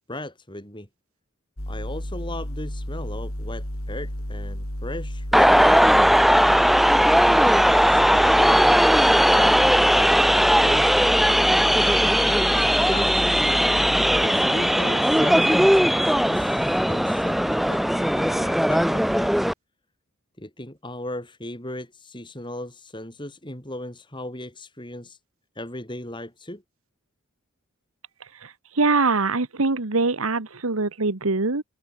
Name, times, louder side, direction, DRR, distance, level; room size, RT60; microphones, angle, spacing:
voice 1, 0.1-0.9 1.7-5.7 7.3-11.1 12.4-13.2 14.2-19.3 20.4-25.2 25.6-26.6, left 1 dB, 20° left, 5.9 m, -37 dB
sound 1, 1.6-14.3, left 1 dB, 80° left, 4.8 m, -32 dB
sound 2, 5.3-19.5, equal, ahead, 0.3 m, -18 dB
voice 2, 28.4-31.6, right 3 dB, 75° right, 1.5 m, -23 dB
head